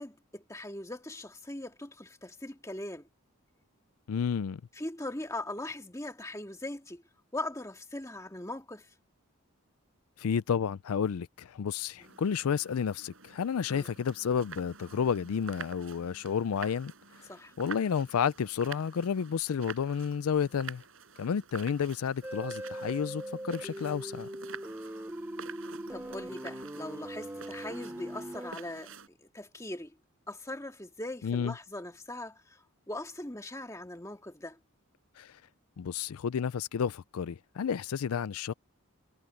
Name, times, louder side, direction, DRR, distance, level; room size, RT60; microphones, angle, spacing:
voice 1, 0.0-3.1 4.7-7.0 7.3-8.9 12.0-12.2 13.7-13.9 17.3-17.5 25.9-30.0 30.3-34.6, left 1 dB, 15° left, 2.0 m, -40 dB
voice 2, 4.1-4.6 10.2-16.9 17.2-17.3 17.6-20.8 21.2-24.3 31.2-31.5 35.2-35.4 35.8-38.5, left 7 dB, 80° left, 0.4 m, -31 dB
sound 1, 12.0-29.1, right 5 dB, 65° right, 5.3 m, -48 dB
sound 2, 22.2-28.5, right 1 dB, 10° right, 0.6 m, -41 dB
head